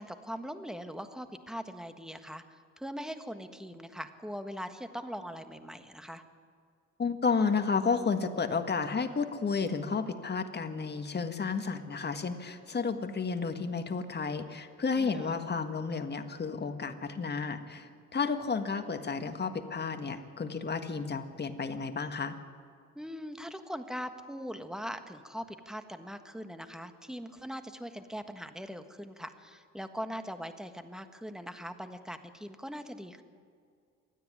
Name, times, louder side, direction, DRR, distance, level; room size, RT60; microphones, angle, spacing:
voice 1, 0.0-6.2 15.0-15.3 22.9-33.2, equal, ahead, 8 dB, 1.5 m, -41 dB
voice 2, 7.0-22.4, left 5 dB, 35° left, 7 dB, 1.8 m, -32 dB
26.5 x 10.0 x 9.7 m, 2.2 s
cardioid pair, 90°, 30 cm